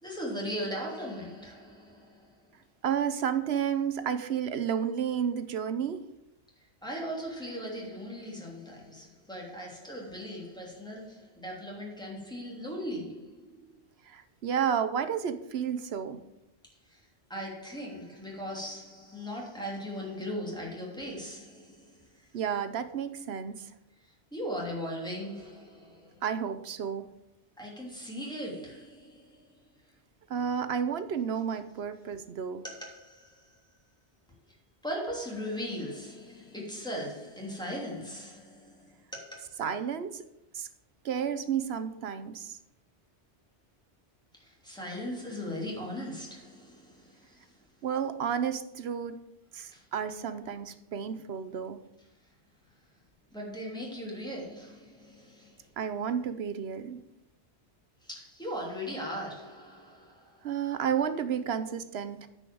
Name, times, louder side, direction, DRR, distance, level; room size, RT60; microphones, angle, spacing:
voice 1, 0.0-2.3 6.8-13.8 16.9-22.3 24.0-26.2 27.6-29.6 32.6-33.5 34.5-34.6 34.8-39.6 44.3-47.6 49.7-49.8 53.3-55.7 58.0-60.5, equal, 5° left, 3.0 m, -39 dB
voice 2, 2.8-6.0 14.1-16.2 22.3-23.7 26.2-27.1 30.3-32.6 39.6-40.2 40.5-40.7 41.0-42.6 47.8-49.2 49.5-51.8 55.8-57.0 60.4-62.3, right 8 dB, 70° right, 1.0 m, -31 dB
9.6 x 5.4 x 7.7 m
omnidirectional pair, 1.1 m